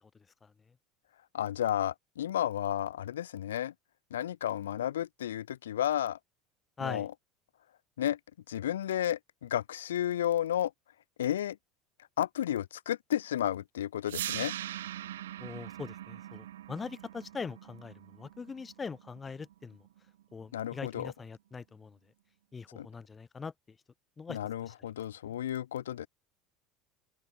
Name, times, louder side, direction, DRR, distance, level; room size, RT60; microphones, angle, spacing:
voice 1, 1.3-3.7 4.1-6.2 6.8-7.1 8.0-8.2 8.5-10.7 11.2-11.6 12.2-14.5 20.5-21.1 22.7-22.9 24.3-26.1, left 11 dB, 85° left, 3.2 m, -32 dB
sound 1, 14.1-20.1, right 12 dB, 80° right, 5.2 m, -41 dB
voice 2, 15.4-19.8 20.3-22.0 22.5-23.5 24.2-24.4 24.7-24.8, left 5 dB, 25° left, 4.9 m, -42 dB
open air
hypercardioid pair, 80°, 0 cm